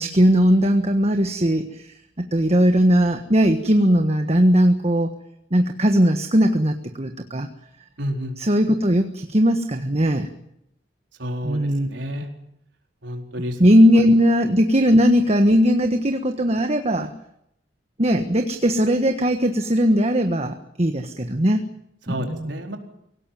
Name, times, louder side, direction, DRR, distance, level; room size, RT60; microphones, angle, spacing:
voice 1, 0.0-5.1 5.5-7.5 8.4-10.3 11.4-12.0 13.6-17.1 18.0-21.6 22.1-22.5, equal, 35° right, 6 dB, 1.5 m, -19 dB
voice 2, 8.0-8.3 11.2-12.3 13.0-13.6 22.1-22.8, equal, 90° right, 3 dB, 4.4 m, -30 dB
25.0 x 17.5 x 9.3 m, 0.78 s
head